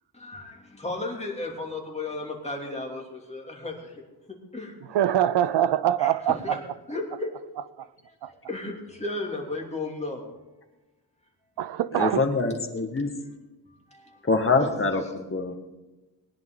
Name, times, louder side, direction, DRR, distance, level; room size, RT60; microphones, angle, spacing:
voice 1, 0.1-4.0 4.5-4.7 6.0-6.6 6.9-7.3 8.1-10.3 13.9-14.3 14.6-15.1, left 2 dB, 15° left, 2.7 m, -35 dB
voice 2, 4.9-6.6 7.8-7.9 8.2-8.3 11.6-12.2, right 11 dB, 85° right, 0.6 m, -24 dB
voice 3, 11.9-13.1 14.3-15.5, left 3 dB, 30° left, 1.6 m, -24 dB
20.5 x 10.5 x 3.9 m
wide cardioid pair, 110°, 40 cm